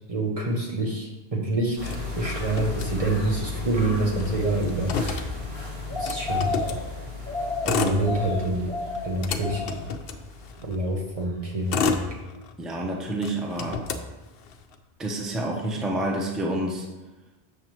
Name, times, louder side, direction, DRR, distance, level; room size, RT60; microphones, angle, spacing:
voice 1, 0.1-5.6 5.9-6.8 7.6-8.7 9.0-9.8 10.6-12.1, right 2 dB, 35° right, -1 dB, 0.8 m, -27 dB
Motor vehicle (road), 1.8-3.4 3.7-3.8 4.1-6.8 7.5-8.5 8.9-10.8 11.3-12.8 13.2-14.8, left 5 dB, 65° left, 0.8 m, -31 dB
sound 1, 1.8-11.0 11.3-11.4, left 3 dB, 65° right, 2.2 m, -33 dB
voice 2, 12.6-13.8 15.0-16.9, right 1 dB, ahead, -1 dB, 0.7 m, -28 dB
7.3 x 6.5 x 3.1 m, 1.1 s
omnidirectional pair, 1.1 m